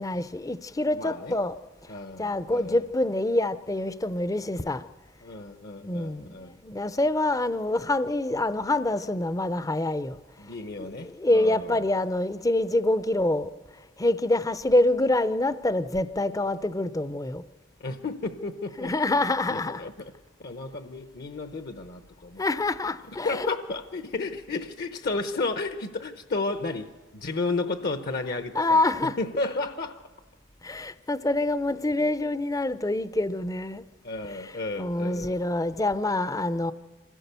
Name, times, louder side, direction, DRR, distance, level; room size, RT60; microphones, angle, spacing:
voice 1, 0.0-1.6 2.2-4.8 5.8-6.4 6.6-10.2 10.8-13.5 14.0-17.4 18.8-19.8 22.4-23.5 28.5-29.2 30.6-33.8 34.4-36.7, left 2 dB, 15° left, 0.5 m, -26 dB
voice 2, 0.9-1.4 1.9-2.8 5.2-6.6 10.4-11.9 17.8-18.9 19.5-20.1 20.4-22.4 23.2-30.0 34.0-35.3, left 3 dB, 50° left, 0.8 m, -33 dB
24.5 x 16.0 x 6.8 m
head